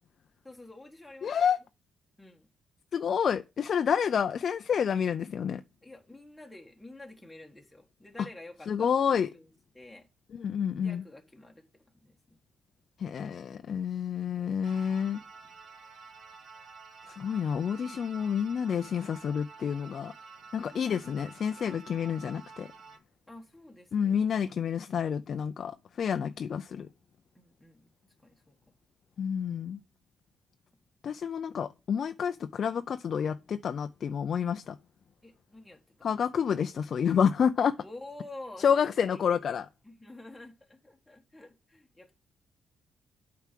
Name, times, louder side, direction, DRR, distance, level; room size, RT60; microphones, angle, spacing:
voice 1, 0.4-1.5 2.2-2.5 5.8-9.5 9.7-10.1 10.8-12.4 20.6-21.0 23.3-24.1 24.5-24.7 27.3-27.9 28.2-28.6 35.2-36.1 37.8-42.1, left 2 dB, 5° left, 1.5 m, -49 dB
voice 2, 1.2-1.6 2.9-5.6 8.7-9.3 10.3-11.0 13.0-15.2 17.2-20.1 20.5-22.7 23.9-26.9 29.2-29.8 31.0-34.8 36.0-37.7 38.6-39.7, left 7 dB, 55° left, 0.5 m, -29 dB
sound 1, 14.6-23.0, right 5 dB, 60° right, 1.2 m, -50 dB
8.2 x 4.7 x 7.5 m
cardioid pair, 105°, 0 cm